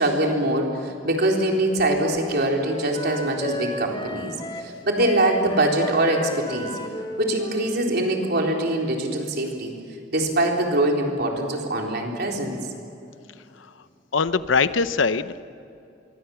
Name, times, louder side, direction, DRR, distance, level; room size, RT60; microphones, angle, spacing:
voice 1, 0.0-6.7 7.2-9.7 10.1-12.5, right 1 dB, 55° right, 1 dB, 3.9 m, -23 dB
Wind instrument woodwind instrument, 1.0-9.0, left 1 dB, 25° left, 1.3 m, -35 dB
voice 2, 14.1-15.4, left 4 dB, 85° left, 13 dB, 0.8 m, -22 dB
26.5 x 23.0 x 7.1 m, 2.6 s
head